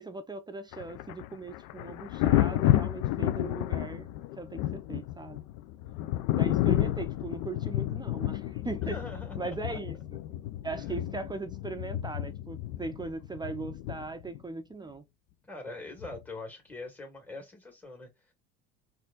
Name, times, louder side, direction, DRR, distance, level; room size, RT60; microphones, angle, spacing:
voice 1, 0.0-4.1 4.4-5.4 6.3-9.0 9.4-10.0 10.6-15.0, right 3 dB, 15° right, 0.5 m, -39 dB
Thunder, 0.7-14.4 16.0-16.2, left 14 dB, 70° left, 0.5 m, -31 dB
voice 2, 8.8-9.8 15.5-18.3, left 2 dB, 5° left, 1.8 m, -43 dB
4.1 x 2.6 x 2.4 m
supercardioid pair, 80°, 30 cm